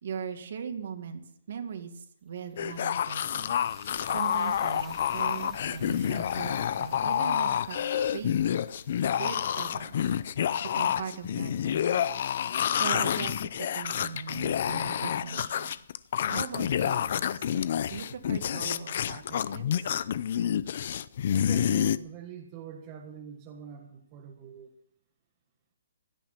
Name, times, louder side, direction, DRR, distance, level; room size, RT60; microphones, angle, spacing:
voice 1, 0.0-3.5 4.1-8.4 9.0-10.1 10.6-12.0 12.6-15.7 16.3-17.6 17.9-19.9, right 7 dB, 45° right, 6 dB, 2.1 m, -40 dB
sound 1, 2.2-12.4, equal, ahead, 2.3 m, -56 dB
sound 2, 2.6-22.0, left 9 dB, 40° left, 0.5 m, -28 dB
voice 2, 21.3-24.8, right 8 dB, 20° right, 1 dB, 1.5 m, -44 dB
16.5 x 12.5 x 5.8 m, 0.69 s
hypercardioid pair, 175°, 0 cm